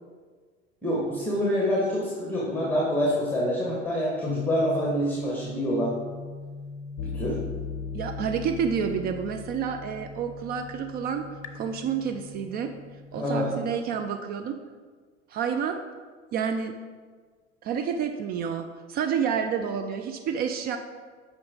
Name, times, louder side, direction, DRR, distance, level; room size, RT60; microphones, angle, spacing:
voice 1, 0.8-5.9 7.1-7.3 13.2-13.5, equal, 5° left, -5 dB, 1.7 m, -26 dB
sound 1, 4.3-13.9, left 4 dB, 45° left, 0.7 m, -39 dB
voice 2, 7.9-11.3 11.5-12.7 13.1-14.6 15.3-15.8 16.3-16.7 17.6-20.8, right 7 dB, 25° right, 7 dB, 0.4 m, -29 dB
8.4 x 5.6 x 3.9 m, 1.5 s
figure-of-eight pair, 75°, 36 cm